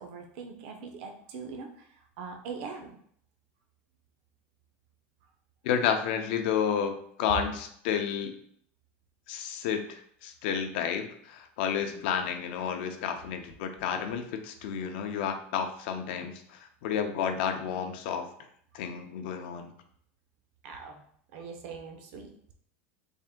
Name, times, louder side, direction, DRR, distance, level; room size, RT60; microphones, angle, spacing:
voice 1, 0.0-3.0 11.9-12.1 20.6-21.0 21.3-22.3, right 5 dB, 55° right, 4 dB, 0.6 m, -42 dB
voice 2, 5.6-8.3 9.3-18.3 18.7-19.7, left 7 dB, 60° left, 6 dB, 0.5 m, -31 dB
3.5 x 2.5 x 3.6 m, 0.64 s
supercardioid pair, 165°, 7 cm